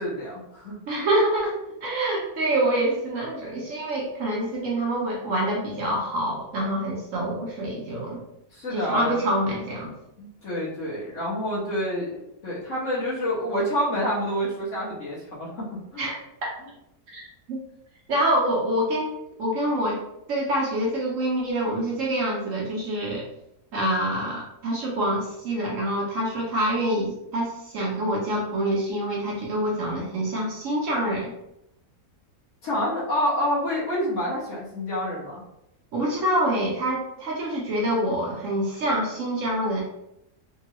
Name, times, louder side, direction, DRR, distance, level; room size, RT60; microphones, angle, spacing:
voice 1, 0.0-0.8 8.5-9.1 10.2-12.1 12.4-15.7 15.9-16.1 32.6-35.4, equal, 55° left, -7 dB, 1.4 m, -28 dB
voice 2, 0.9-8.2 8.7-9.9 16.0-16.2 17.1-17.2 17.5-17.6 18.1-20.0 20.3-23.2 23.7-31.3 35.9-39.8, right 1 dB, 60° right, -3 dB, 1.0 m, -26 dB
3.6 x 2.3 x 2.9 m, 0.82 s
omnidirectional pair, 1.7 m